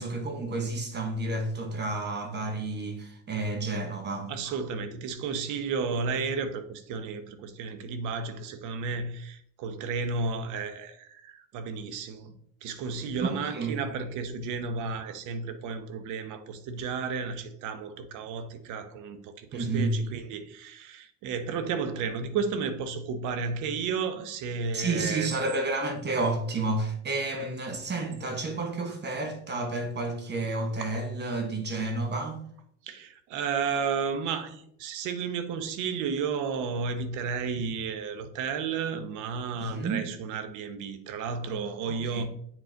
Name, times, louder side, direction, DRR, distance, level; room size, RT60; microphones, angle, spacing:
voice 1, 0.0-4.3 13.2-13.8 19.5-19.9 24.7-32.4 39.5-40.0 41.8-42.2, right 2 dB, 35° right, 1.1 m, -31 dB
voice 2, 4.3-12.4 12.6-25.3 32.8-42.2, right 5 dB, 70° right, 1.0 m, -32 dB
7.4 x 3.9 x 3.9 m
cardioid pair, 120°, 31 cm